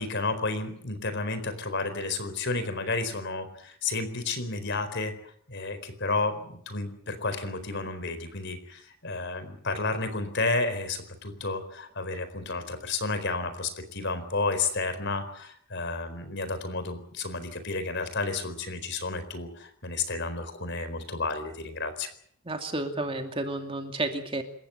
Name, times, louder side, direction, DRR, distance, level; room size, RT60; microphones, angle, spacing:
voice 1, 0.0-5.1 5.5-22.1, left 3 dB, 55° left, 11 dB, 4.4 m, -31 dB
voice 2, 22.5-24.4, right 2 dB, 25° right, 5 dB, 2.5 m, -31 dB
28.0 x 15.0 x 9.0 m, 0.65 s
head